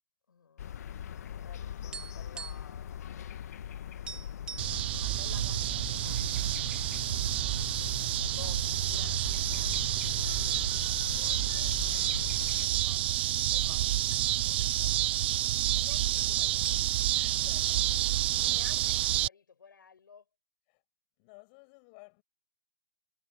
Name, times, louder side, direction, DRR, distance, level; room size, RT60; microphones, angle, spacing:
voice 1, 0.3-1.0 1.3-3.1 4.0-7.3 8.3-15.5 15.7-16.8 18.5-20.3, left 6 dB, 80° left, 7.9 m, -56 dB
sound 1, 0.6-12.7, left 9 dB, 50° left, 1.8 m, -40 dB
sound 2, 1.9-2.8 3.1-3.3 3.6-3.7 4.1-4.8 5.5-6.2 6.5-6.7 7.4-8.0 8.7-8.8 9.2-9.7 10.1-10.2 11.2-13.3 13.6-13.7 13.9-14.8 15.8-15.9 16.2-17.2, right 6 dB, 10° right, 2.3 m, -45 dB
sound 3, 4.6-19.3, right 14 dB, 30° right, 0.3 m, -29 dB
voice 2, 8.2-8.5 9.0-9.1 17.1-18.1 20.7-20.8 21.2-22.2, left 33 dB, 30° left, 7.0 m, -56 dB
hypercardioid pair, 160°, 11 cm